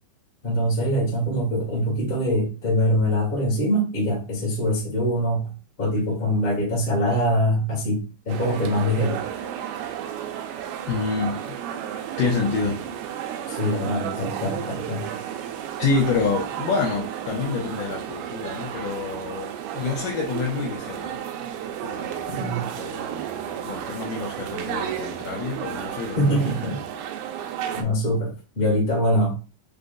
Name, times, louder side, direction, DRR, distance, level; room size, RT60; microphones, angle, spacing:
voice 1, 0.4-5.5 5.8-9.2 13.5-15.2 22.3-22.7 26.1-26.8 27.7-29.3, equal, 35° left, 0.8 m, -23 dB
sound 1, 8.3-27.8, right 10 dB, 80° right, 2.3 m, -33 dB
voice 2, 10.9-11.6 12.2-13.0 15.8-21.2 21.8-26.4 26.6-26.8, left 4 dB, 80° left, 1.9 m, -28 dB
6.6 x 2.4 x 2.3 m
omnidirectional pair, 4.4 m